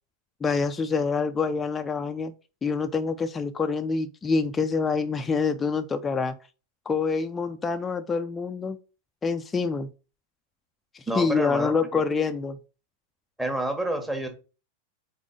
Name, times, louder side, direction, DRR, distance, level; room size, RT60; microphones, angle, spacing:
voice 1, 0.4-2.3 2.6-6.4 6.9-8.8 9.2-9.9 10.9-12.6, left 4 dB, 15° left, 0.4 m, -26 dB
voice 2, 11.1-12.0 13.4-14.3, right 1 dB, 5° right, 1.3 m, -29 dB
4.8 x 4.1 x 5.0 m
figure-of-eight pair, 90°, 0 cm